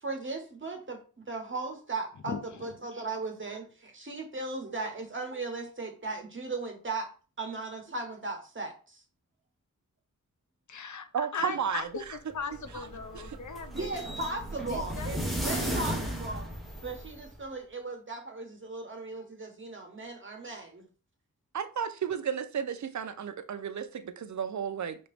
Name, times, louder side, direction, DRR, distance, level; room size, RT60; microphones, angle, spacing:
voice 1, 0.0-7.1 7.4-8.7 13.7-16.5 16.8-20.9, right 3 dB, 35° right, 1.2 m, -37 dB
voice 2, 2.2-2.6 10.7-11.1 11.3-14.1 14.7-16.1, left 5 dB, 60° left, 0.6 m, -39 dB
voice 3, 11.1-11.9 13.1-13.2 21.5-25.0, right 7 dB, 60° right, 0.5 m, -33 dB
sound 1, 12.3-17.4, right 1 dB, ahead, 1.0 m, -35 dB
5.2 x 2.9 x 3.4 m
wide cardioid pair, 80°, 34 cm